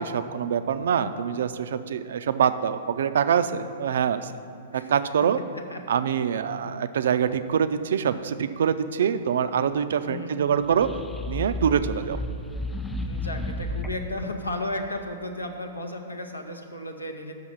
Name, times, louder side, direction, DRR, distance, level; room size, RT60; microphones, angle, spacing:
voice 1, 0.0-4.3 4.7-5.4 5.9-10.9 11.3-12.2, right 8 dB, 60° right, 12 dB, 0.4 m, -25 dB
voice 2, 10.0-10.4 13.1-17.3, left 1 dB, 80° left, 4 dB, 0.7 m, -34 dB
sound 1, 10.5-14.2, left 1 dB, 5° left, 0.4 m, -32 dB
6.1 x 5.8 x 7.1 m, 2.5 s
figure-of-eight pair, 105°, 0 cm